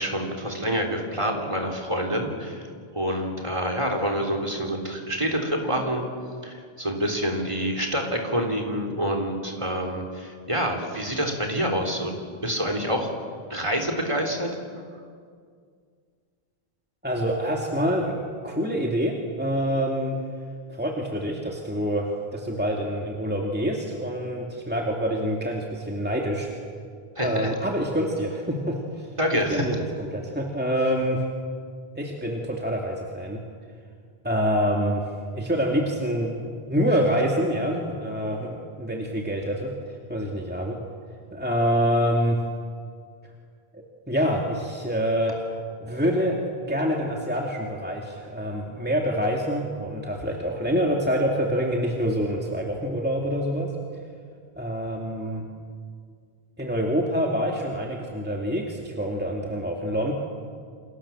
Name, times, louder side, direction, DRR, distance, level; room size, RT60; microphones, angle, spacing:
voice 1, 0.0-2.6 2.9-6.1 6.4-12.1 12.4-13.1 13.5-14.5 27.2-27.5 29.2-29.7, equal, 30° right, 3 dB, 3.9 m, -27 dB
voice 2, 17.0-20.2 20.7-26.5 27.2-29.1 29.5-29.8 30.1-31.2 32.0-33.4 34.2-39.7 40.1-40.8 41.3-42.4 43.7-45.5 45.8-46.4 46.7-54.0 54.6-55.5 56.6-60.1, equal, 10° right, 0 dB, 2.5 m, -26 dB
29.0 x 27.0 x 7.5 m, 2.1 s
omnidirectional pair, 1.1 m